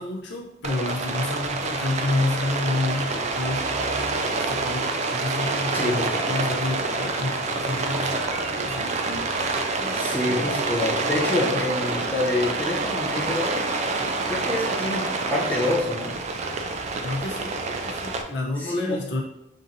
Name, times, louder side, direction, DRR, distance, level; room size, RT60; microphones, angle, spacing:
voice 1, 0.0-3.7 4.2-8.9 9.7-10.6 11.4-11.6 14.0-14.3 17.0-19.2, left 2 dB, 70° left, -1 dB, 0.6 m, -30 dB
Rain, 0.6-18.2, right 3 dB, 40° right, 0.4 m, -27 dB
voice 2, 5.7-6.2 9.6-13.5 14.3-16.2 18.6-19.0, left 1 dB, 10° left, -6 dB, 1.2 m, -27 dB
6.1 x 2.6 x 2.6 m, 0.83 s
head